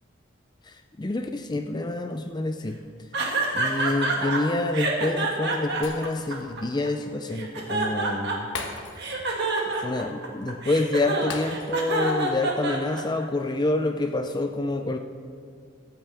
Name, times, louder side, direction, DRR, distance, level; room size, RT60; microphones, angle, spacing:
voice 1, 0.6-2.8 3.5-8.5 9.7-15.0, left 2 dB, 20° left, 6 dB, 0.5 m, -27 dB
sound 1, 3.1-4.4 4.7-6.9 7.3-8.6 9.0-13.2, right 2 dB, 60° right, 2.1 m, -27 dB
Shatter, 5.8-6.5 6.9-7.0 8.5-9.3 9.6-9.8 11.3-12.0 12.4-12.5, left 4 dB, 70° left, 1.5 m, -38 dB
24.0 x 8.9 x 3.5 m, 2.3 s
head